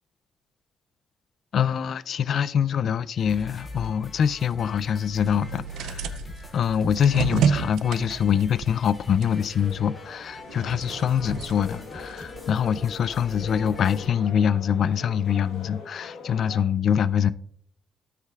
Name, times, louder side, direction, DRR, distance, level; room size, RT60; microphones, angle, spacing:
voice 1, 1.5-6.2 6.5-17.3, left 8 dB, 60° left, 0.3 m, -24 dB
sound 1, 3.2-14.1, left 3 dB, 25° left, 2.3 m, -44 dB
sound 2, 5.1-10.0 10.3-12.4, right 7 dB, 85° right, 0.4 m, -30 dB
sound 3, 9.2-16.6, left 4 dB, 90° left, 1.3 m, -42 dB
13.0 x 6.6 x 2.3 m
cardioid pair, 90°, 0 cm